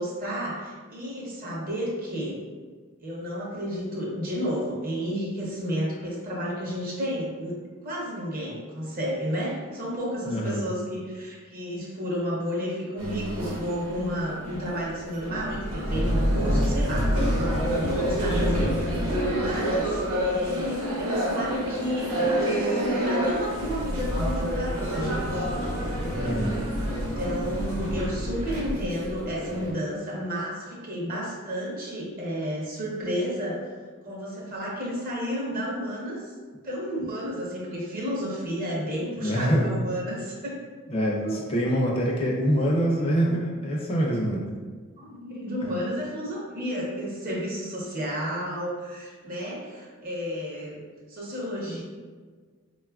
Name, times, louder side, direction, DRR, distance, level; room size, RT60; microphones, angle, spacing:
voice 1, 0.0-2.4 3.0-7.5 7.8-17.1 17.7-18.7 19.3-25.5 26.8-33.7 34.0-36.3 36.6-40.6 41.2-41.4 42.2-42.3 43.2-43.4 44.2-44.3 45.0-50.8 51.1-51.8, equal, 45° right, -4 dB, 0.7 m, -32 dB
voice 2, 10.3-10.6 26.2-26.6 39.2-39.7 40.9-44.4, equal, 30° left, -2 dB, 0.4 m, -25 dB
sound 1, 13.0-29.7, equal, 80° right, 0.9 m, -27 dB
3.6 x 2.3 x 2.3 m, 1.5 s
head